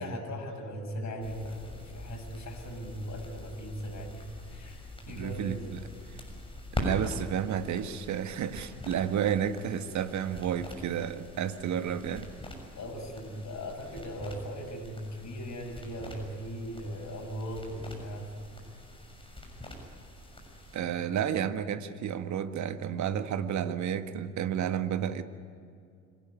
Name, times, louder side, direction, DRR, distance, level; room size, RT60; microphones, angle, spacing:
voice 1, 0.0-5.9 12.8-18.6, equal, 45° left, 3 dB, 7.1 m, -39 dB
sound 1, 1.2-20.8, left 1 dB, 15° left, 6.7 m, -43 dB
voice 2, 5.1-5.8 6.8-12.3 20.7-25.2, right 9 dB, 45° right, 10 dB, 1.6 m, -31 dB
26.0 x 18.0 x 9.7 m, 2.3 s
hypercardioid pair, 60°, 39 cm